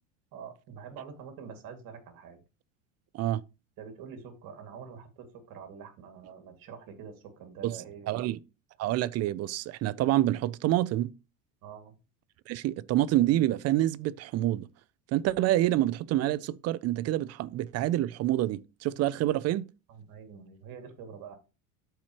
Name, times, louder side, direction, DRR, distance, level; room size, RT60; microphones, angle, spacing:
voice 1, 0.3-2.4 3.8-8.3 11.6-11.9 19.9-21.3, right 6 dB, 55° right, 2.3 m, -46 dB
voice 2, 8.1-8.4 8.8-11.1 12.5-14.7 15.1-19.6, right 14 dB, 40° right, 0.5 m, -27 dB
13.0 x 4.5 x 3.0 m
supercardioid pair, 120°, 40 cm